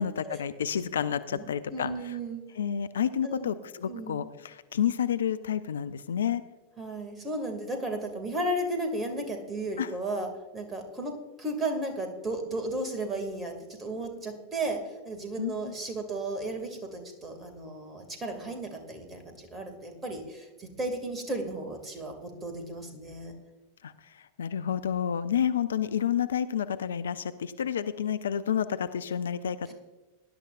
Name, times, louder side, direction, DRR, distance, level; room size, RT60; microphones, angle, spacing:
voice 1, 0.0-2.1 2.6-6.4 9.8-9.9 15.4-15.7 23.8-23.9 24.4-29.7, left 8 dB, 65° left, 12 dB, 0.5 m, -30 dB
voice 2, 1.3-2.4 3.2-3.5 3.9-4.3 6.8-10.3 10.5-11.1 11.4-13.5 13.8-14.8 15.0-23.3, right 1 dB, 20° right, 5 dB, 2.3 m, -34 dB
19.0 x 11.0 x 2.5 m, 1.2 s
figure-of-eight pair, 90°, 0 cm